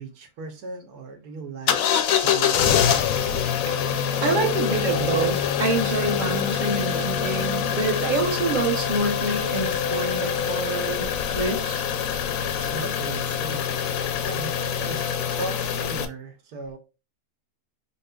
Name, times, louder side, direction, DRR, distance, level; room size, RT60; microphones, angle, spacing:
voice 1, 0.0-1.8 2.2-3.0 12.7-13.6 14.2-16.8, right 3 dB, 85° right, 1.4 m, -37 dB
sound 1, 1.7-16.0, left 8 dB, 70° left, 0.9 m, -25 dB
voice 2, 4.2-11.8, right 3 dB, 40° right, 0.8 m, -26 dB
4.6 x 2.7 x 2.2 m
omnidirectional pair, 1.6 m